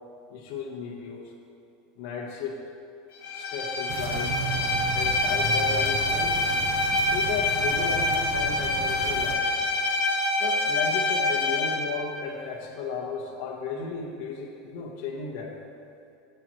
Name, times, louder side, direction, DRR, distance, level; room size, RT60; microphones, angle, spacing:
voice 1, 0.3-1.3 2.0-2.6 3.3-4.5 4.9-6.4 7.1-9.5 10.4-15.6, left 5 dB, 60° left, -1 dB, 1.1 m, -34 dB
Bowed string instrument, 3.2-11.9, left 2 dB, 75° left, 1.4 m, -26 dB
sound 1, 3.9-9.4, right 5 dB, 50° right, 0.9 m, -34 dB
14.5 x 7.6 x 3.1 m, 2.6 s
supercardioid pair, 160°, 0 cm